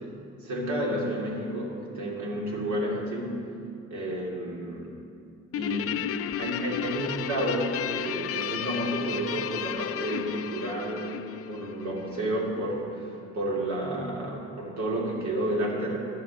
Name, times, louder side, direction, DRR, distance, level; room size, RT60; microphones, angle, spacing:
voice 1, 0.0-3.4 3.9-5.0 5.5-16.0, right 1 dB, 70° right, -3 dB, 2.5 m, -31 dB
Guitar, 5.5-12.2, left 10 dB, 50° left, 0.5 m, -33 dB
11.0 x 7.5 x 6.3 m, 2.5 s
cardioid pair, 90°, 30 cm